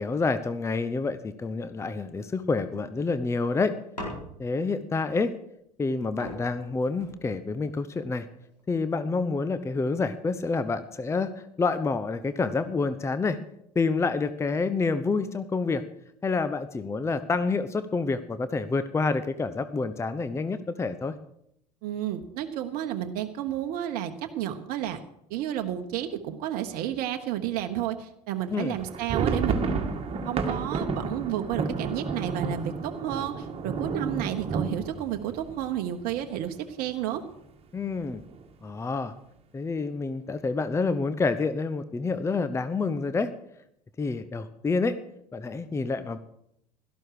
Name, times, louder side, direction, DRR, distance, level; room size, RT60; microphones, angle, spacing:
voice 1, 0.0-3.7 4.4-5.3 5.8-8.3 8.7-13.4 13.7-15.8 16.2-21.1 28.5-28.7 37.7-38.2 38.6-39.1 39.5-43.3 44.0-45.0 45.3-46.2, left 4 dB, 15° left, 13 dB, 0.8 m, -28 dB
sound 1, 4.0-4.7 5.8-5.9 6.2-7.7 8.4-8.9, left 1 dB, 90° left, 4.3 m, -41 dB
voice 2, 21.8-25.0 25.3-29.6 30.2-37.2, right 11 dB, 45° right, 6 dB, 1.1 m, -31 dB
sound 2, 28.7-36.5 36.8-36.9 37.2-37.4 37.9-38.4, right 5 dB, 30° right, 1.9 m, -31 dB
17.0 x 13.0 x 4.9 m, 0.76 s
figure-of-eight pair, 70°, 20 cm